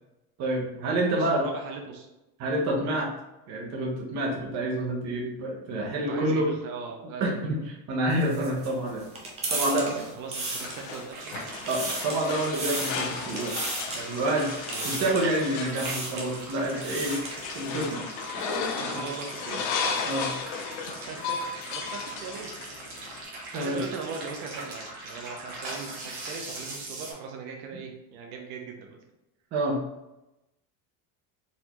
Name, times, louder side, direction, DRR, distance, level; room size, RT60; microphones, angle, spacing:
voice 1, 0.4-1.4 2.4-3.1 3.5-6.5 7.2-9.0 9.5-10.0 11.7-13.6 13.9-17.2 17.5-18.0 18.9-19.0 20.1-20.3 23.5-23.8 29.5-29.8, right 1 dB, 40° right, -1 dB, 0.9 m, -28 dB
voice 2, 1.1-2.1 6.1-7.5 9.5-11.4 14.7-14.9 18.7-20.1 21.1-21.4 21.6-22.5 23.5-29.0, right 5 dB, 75° right, 1 dB, 0.7 m, -40 dB
sound 1, 8.1-11.2 11.5-12.2 12.5-13.1 13.5-14.0 14.7-15.3 15.7-16.3 16.7-17.4, right 2 dB, 15° right, 0.4 m, -34 dB
sound 2, 10.3-23.2, left 5 dB, 80° left, 0.8 m, -35 dB
sound 3, 11.1-27.1, right 2 dB, 55° right, 1.2 m, -41 dB
4.1 x 2.7 x 2.9 m, 0.95 s
cardioid pair, 170°, 42 cm